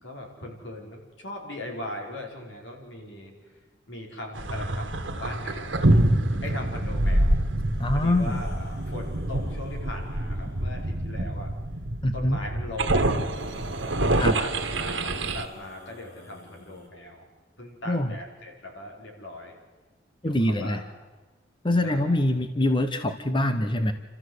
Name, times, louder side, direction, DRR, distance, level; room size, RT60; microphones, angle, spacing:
voice 1, 0.0-3.5 3.9-5.9 6.4-7.4 7.9-11.5 12.1-13.3 13.7-17.3 17.6-19.6 20.2-20.8 21.8-22.2, left 1 dB, 80° left, 1 dB, 4.8 m, -39 dB
sound 1, 4.3-15.4, right 1 dB, 80° right, 1.7 m, -26 dB
sound 2, 7.5-10.9 12.9-16.9, left 1 dB, 55° left, 4.1 m, -49 dB
voice 2, 7.8-8.4 12.0-12.4 14.2-14.4 17.9-18.1 20.2-20.8 21.6-23.9, left 1 dB, 25° left, 9 dB, 0.9 m, -24 dB
28.5 x 14.0 x 8.1 m, 1.3 s
head